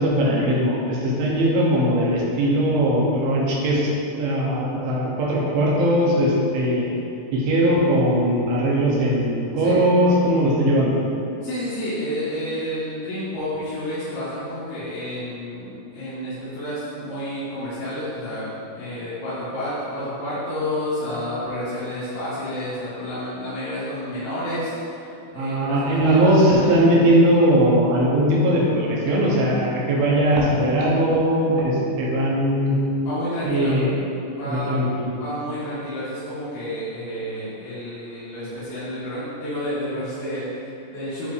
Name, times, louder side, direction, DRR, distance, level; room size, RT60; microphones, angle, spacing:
voice 1, 0.0-6.9 7.3-11.0 25.4-32.8 33.4-33.9 34.4-35.2, right 1 dB, 75° right, -4 dB, 2.6 m, -20 dB
voice 2, 11.4-27.0 33.0-33.8 34.3-34.8 35.1-41.3, left 1 dB, 80° left, -12 dB, 4.0 m, -30 dB
9.7 x 3.9 x 3.3 m, 2.6 s
omnidirectional pair, 5.1 m